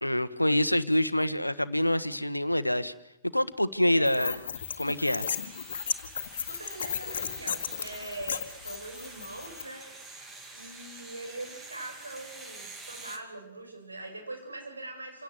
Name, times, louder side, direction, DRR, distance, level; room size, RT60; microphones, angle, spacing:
voice 1, 0.0-2.9 3.3-4.4 4.8-5.3, left 1 dB, 90° left, 14 dB, 1.3 m, -26 dB
voice 2, 3.8-4.5 6.3-9.9 10.5-15.2, right 2 dB, 80° right, 2 dB, 7.5 m, -42 dB
sound 1, 4.1-9.6, left 7 dB, 60° left, 1.9 m, -35 dB
sound 2, 4.5-13.2, right 3 dB, 15° right, 3.2 m, -47 dB
28.0 x 17.5 x 8.0 m, 0.87 s
figure-of-eight pair, 110°, 0 cm